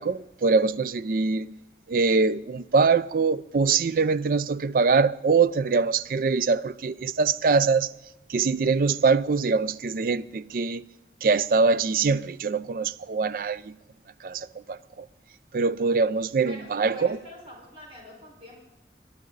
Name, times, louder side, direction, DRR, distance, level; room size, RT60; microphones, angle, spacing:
voice 1, 0.0-1.6 1.9-7.9 8.3-10.8 11.2-13.8 14.2-15.1 15.5-17.2, right 4 dB, 50° right, 0.4 m, -23 dB
voice 2, 16.4-18.6, right 1 dB, 30° right, 4.7 m, -44 dB
22.0 x 12.0 x 3.9 m
head